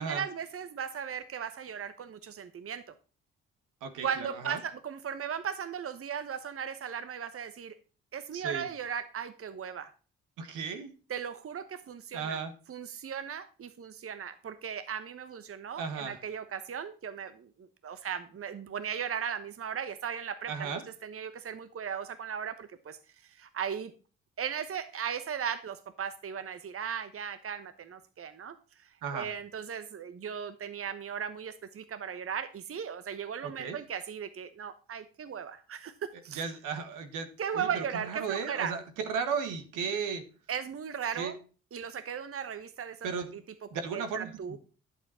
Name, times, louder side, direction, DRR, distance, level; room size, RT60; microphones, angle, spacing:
voice 1, 0.0-2.8 4.0-7.7 8.1-9.9 11.1-12.4 12.7-20.7 21.0-23.9 24.4-28.5 29.1-35.9 36.2-36.5 37.4-38.7 40.5-41.3 41.7-43.1 43.9-44.6, right 7 dB, 45° right, 11 dB, 1.1 m, -37 dB
voice 2, 3.8-4.6 8.3-8.7 10.4-10.9 12.1-12.5 15.8-16.2 20.5-20.8 29.0-29.3 33.4-33.8 36.1-40.3 41.1-41.3 43.0-43.3 43.7-44.6, right 6 dB, 70° right, 8 dB, 1.6 m, -35 dB
11.0 x 7.2 x 4.3 m, 0.36 s
hypercardioid pair, 40°, 32 cm